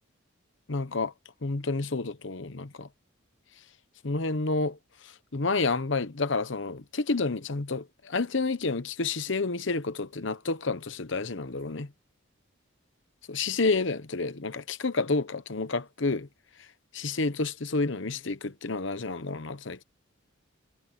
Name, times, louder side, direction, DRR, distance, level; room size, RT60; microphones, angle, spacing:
voice 1, 0.7-1.1 1.4-2.9 4.0-4.8 5.3-11.9 13.3-16.3 16.9-19.8, left 3 dB, 60° left, 1.0 m, -29 dB
head